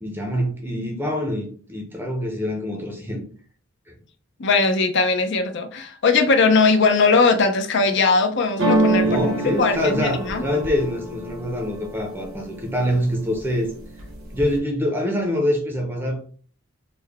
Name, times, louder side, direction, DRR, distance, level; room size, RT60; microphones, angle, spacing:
voice 1, 0.0-3.3 9.0-13.7 14.3-16.3, left 1 dB, 10° right, 0.6 m, -25 dB
voice 2, 4.4-10.4, left 4 dB, 60° left, 0.6 m, -19 dB
sound 1, 8.6-12.5 12.9-13.5 13.8-14.6, right 2 dB, 80° right, 1.1 m, -25 dB
3.7 x 2.2 x 3.4 m
head